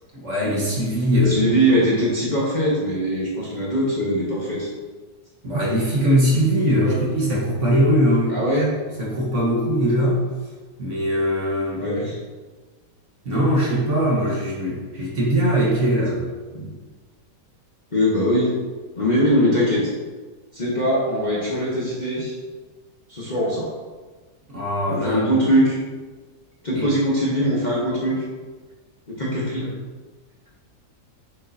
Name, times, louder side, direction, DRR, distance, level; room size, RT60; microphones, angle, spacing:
voice 1, 0.1-1.4 5.4-8.4 9.0-10.2 10.8-11.9 13.2-16.3 24.5-25.3 26.7-26.9, equal, 45° right, -4 dB, 1.5 m, -21 dB
voice 2, 1.1-4.7 6.8-7.0 8.3-8.7 11.8-12.2 16.5-16.7 17.9-18.6 19.0-19.9 20.5-22.3 23.1-23.7 24.9-25.8 26.6-28.2 29.1-29.7, equal, 30° left, -7 dB, 1.1 m, -21 dB
7.2 x 5.3 x 2.7 m, 1.4 s
omnidirectional pair, 1.9 m